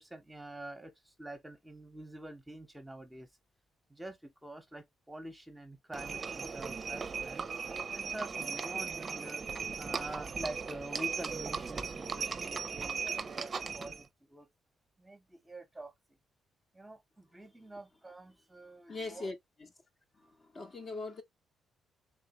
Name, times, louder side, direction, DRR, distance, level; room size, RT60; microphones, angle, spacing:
voice 1, 0.0-3.3 3.9-7.5 7.9-9.4 9.8-14.5 15.0-15.9 16.7-19.3, right 1 dB, 10° right, 1.0 m, -46 dB
Livestock farm animals working animals, 5.9-14.0, right 5 dB, 40° right, 0.5 m, -37 dB
voice 2, 18.9-19.3 19.6-19.7 20.5-21.2, left 3 dB, 40° left, 1.0 m, -39 dB
3.7 x 3.2 x 2.9 m
cardioid pair, 90°, 0 cm